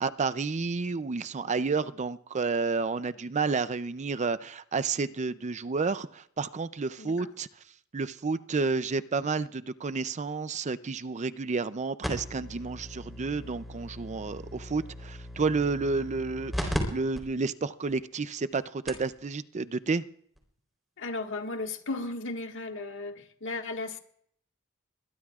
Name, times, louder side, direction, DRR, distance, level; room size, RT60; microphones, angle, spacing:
voice 1, 0.0-7.5 7.9-20.0, right 4 dB, 35° right, 0.5 m, -30 dB
voice 2, 7.0-7.3 21.0-24.0, left 2 dB, 60° left, 1.7 m, -35 dB
sound 1, 12.0-16.8 17.2-17.3 17.9-18.0 18.6-18.7 18.9-19.1 20.4-20.5, equal, ahead, 3.7 m, -37 dB
22.0 x 21.5 x 2.4 m
head